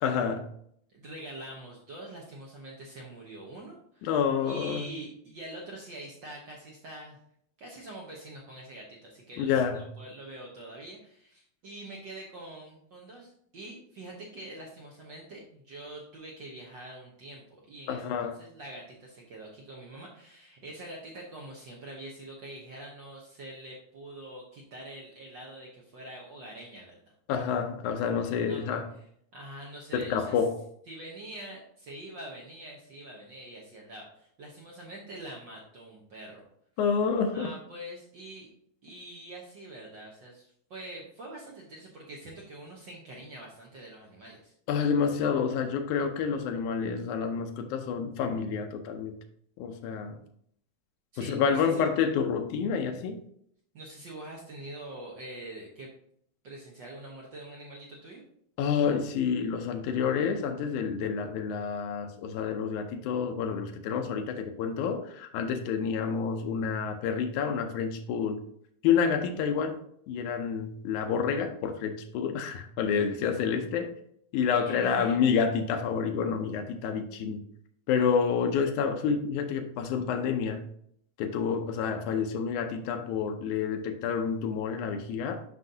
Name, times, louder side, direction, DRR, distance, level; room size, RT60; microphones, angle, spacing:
voice 1, 0.0-0.5 4.0-4.9 9.4-9.9 17.9-18.4 27.3-28.9 29.9-30.6 36.8-37.5 44.7-49.2 49.6-50.2 51.2-53.2 58.6-68.4 68.8-69.8 70.1-73.9 74.3-77.4 77.9-80.7 81.2-85.4, left 6 dB, 90° left, 2.1 m, -28 dB
voice 2, 0.9-4.1 4.4-7.2 7.6-27.1 28.5-28.8 29.3-30.4 30.9-36.4 37.3-38.5 38.8-44.5 51.1-51.9 53.7-55.9 56.4-58.2 74.5-75.2, right 1 dB, 75° right, 1.0 m, -44 dB
7.8 x 5.6 x 2.7 m
omnidirectional pair, 3.4 m